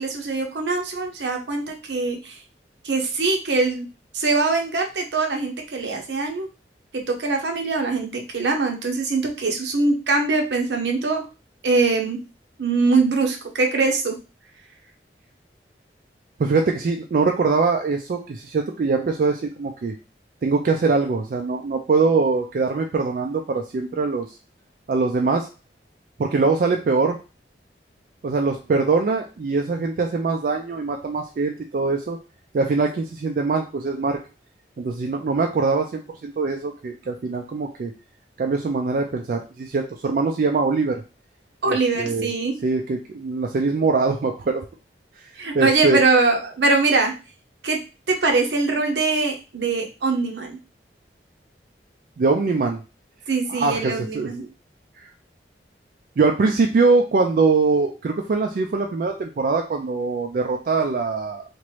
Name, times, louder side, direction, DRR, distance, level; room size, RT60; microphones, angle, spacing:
voice 1, 0.0-2.4 2.8-3.9 4.1-6.5 6.9-11.2 11.6-12.2 12.6-14.1 41.6-42.6 45.4-47.1 47.6-47.8 48.1-50.6 53.3-54.4, right 3 dB, 80° right, 3 dB, 0.7 m, -22 dB
voice 2, 16.4-19.9 20.4-24.3 24.9-25.5 26.2-27.2 28.2-32.2 32.5-34.2 34.8-37.9 38.4-41.0 41.7-42.3 42.6-44.6 45.2-45.3 45.5-46.0 52.2-52.8 53.5-54.5 55.0-55.1 56.2-61.4, right 4 dB, 50° right, 3 dB, 0.3 m, -22 dB
3.0 x 2.5 x 3.0 m, 0.31 s
head